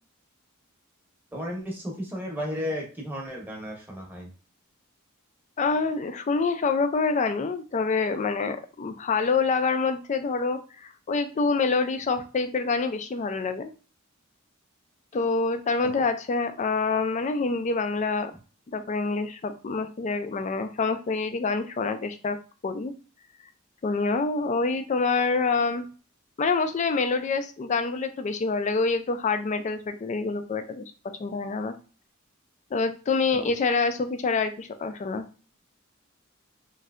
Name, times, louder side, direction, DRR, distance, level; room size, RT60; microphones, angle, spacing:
voice 1, 1.3-4.3 33.3-33.5, equal, 10° right, -2 dB, 0.8 m, -34 dB
voice 2, 5.6-13.7 15.1-18.3 18.7-22.4 22.6-22.9 23.8-25.9 26.4-31.7 32.7-35.2, left 4 dB, 35° left, 9 dB, 0.3 m, -26 dB
3.2 x 2.7 x 2.4 m, 0.37 s
head